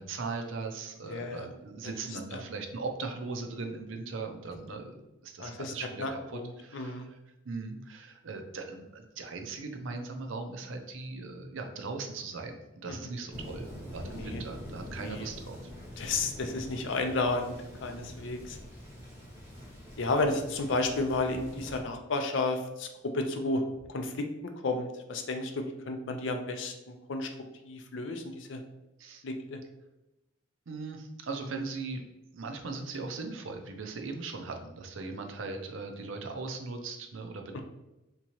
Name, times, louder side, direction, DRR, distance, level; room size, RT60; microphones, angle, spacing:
voice 1, 0.0-5.0 5.2-7.2 7.4-15.6 29.0-29.2 30.7-32.0 32.3-37.6, right 3 dB, 70° right, 5 dB, 0.5 m, -39 dB
voice 2, 1.1-1.5 2.3-2.4 5.4-5.7 6.0-7.1 12.9-13.0 14.1-14.4 15.0-15.2 16.0-18.6 20.0-22.9 23.1-23.6 23.9-27.3 27.7-28.6 29.2-29.6, left 2 dB, 60° left, 5 dB, 0.5 m, -32 dB
Thunder, 13.3-21.8, left 1 dB, 10° right, 0.8 m, -45 dB
3.6 x 2.9 x 2.9 m, 0.95 s
head